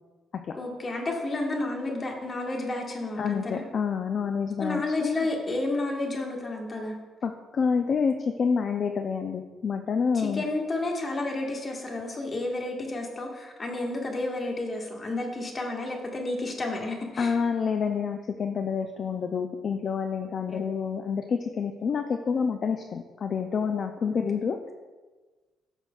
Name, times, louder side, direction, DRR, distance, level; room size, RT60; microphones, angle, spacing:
voice 1, 0.5-3.6 4.6-7.0 10.1-17.3 20.5-20.6 24.0-24.4, left 2 dB, 35° left, 0 dB, 1.6 m, -31 dB
voice 2, 3.2-5.2 7.2-10.5 17.2-24.7, left 6 dB, 50° left, 6 dB, 0.5 m, -28 dB
13.5 x 5.9 x 2.4 m, 1.3 s
cardioid pair, 90°, 0 cm